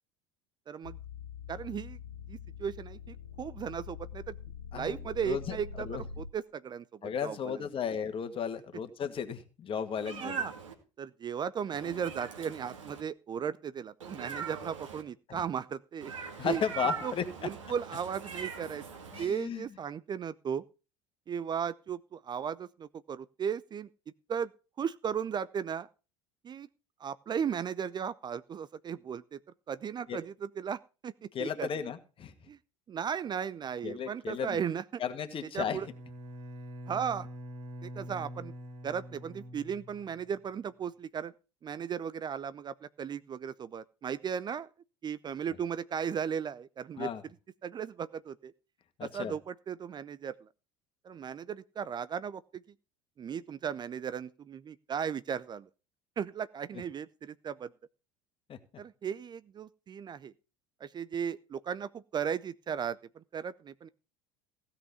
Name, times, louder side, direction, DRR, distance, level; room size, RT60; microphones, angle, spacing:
voice 1, 0.7-1.0 1.5-2.0 2.3-4.4 4.7-7.6 10.2-10.5 11.0-16.1 16.4-16.6 17.0-17.1 17.4-18.8 19.2-20.6 21.3-23.9 24.3-24.5 24.8-25.9 26.4-26.7 27.0-29.4 29.7-31.7 32.5-32.6 32.9-35.0 35.5-35.9 36.9-37.3 37.8-38.5 38.8-41.3 41.6-44.7 45.0-47.3 47.6-48.5 49.0-50.5 51.0-52.6 53.2-55.7 56.2-57.7 58.8-60.3 60.8-63.9, right 7 dB, 25° right, 17 dB, 0.6 m, -36 dB
sound 1, 0.8-6.3, left 6 dB, 80° left, 0.9 m, -44 dB
voice 2, 5.2-5.6 5.9-6.0 7.0-10.4 15.3-15.4 16.4-17.2 19.1-19.6 30.1-30.2 31.3-32.3 33.8-34.6 35.0-35.8 47.0-47.2 49.0-49.3 58.5-58.6, left 7 dB, 35° left, 8 dB, 1.9 m, -34 dB
Meow, 9.9-10.7 11.7-13.0 14.0-15.0 16.0-19.3, right 6 dB, 75° right, 2.3 m, -41 dB
Bowed string instrument, 35.7-40.4, equal, 50° right, 2.4 m, -45 dB
16.0 x 5.7 x 6.9 m, 0.33 s
figure-of-eight pair, 70°, 16 cm